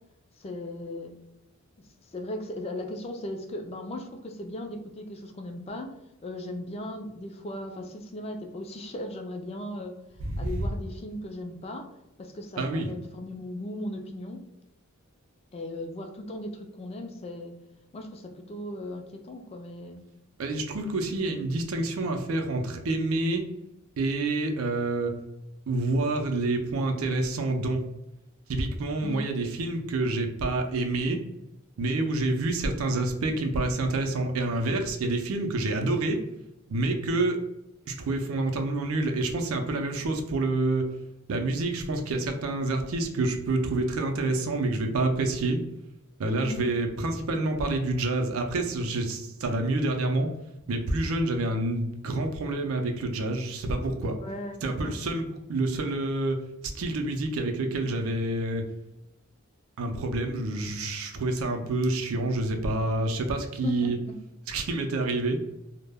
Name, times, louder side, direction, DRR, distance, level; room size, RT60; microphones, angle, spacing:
voice 1, 0.4-1.1 2.0-5.9 6.2-10.0 10.4-11.9 12.2-14.4 15.5-17.5 17.9-20.0 29.0-29.2 46.4-46.7 54.2-54.9 63.6-63.9, left 1 dB, 30° left, 4 dB, 0.3 m, -37 dB
voice 2, 10.2-10.7 12.6-12.9 20.4-23.5 24.0-25.1 25.7-27.8 28.5-31.2 31.8-36.2 36.7-37.4 37.9-40.9 41.3-45.6 46.2-50.3 50.7-54.2 54.6-56.4 56.7-58.6 59.8-64.0 64.5-65.4, right 2 dB, 85° right, 4 dB, 0.4 m, -28 dB
2.2 x 2.0 x 3.3 m, 0.88 s
head